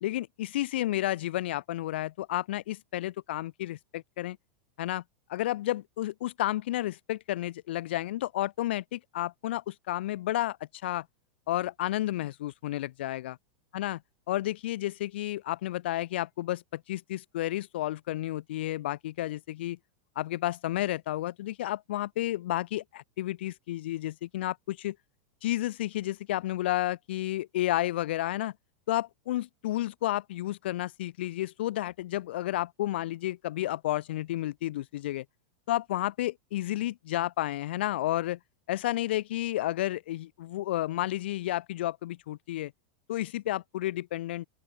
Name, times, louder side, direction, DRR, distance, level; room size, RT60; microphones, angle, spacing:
voice 1, 0.0-4.4 4.8-5.0 5.3-10.6 10.8-11.1 11.5-13.4 13.7-14.0 14.3-19.8 20.2-25.0 25.4-28.5 28.9-35.2 35.7-38.4 38.7-42.7 43.1-44.5, left 15 dB, 75° left, 2.3 m, -31 dB
open air
supercardioid pair, 155°, 6 cm